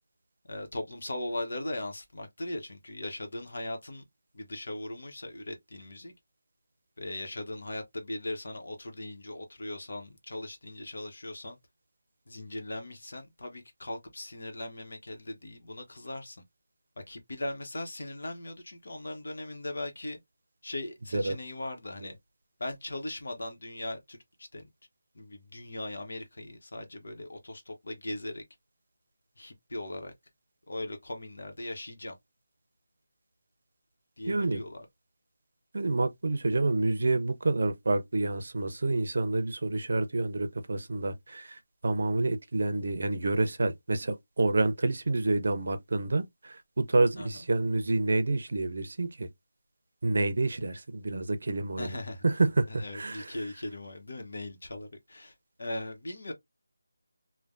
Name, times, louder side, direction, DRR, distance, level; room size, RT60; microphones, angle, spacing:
voice 1, 0.5-4.0 4.3-6.1 7.0-11.6 12.3-16.4 17.1-20.2 20.6-22.2 22.6-24.7 25.1-28.4 29.4-30.1 30.7-32.2 34.2-34.9 47.2-47.4 51.8-52.2 52.7-56.3, left 1 dB, 65° left, 1.0 m, -39 dB
voice 2, 34.3-34.6 35.7-49.3 50.0-52.0 52.2-53.3, right 2 dB, 60° right, 0.6 m, -28 dB
3.2 x 2.2 x 2.5 m
figure-of-eight pair, 165°, 0 cm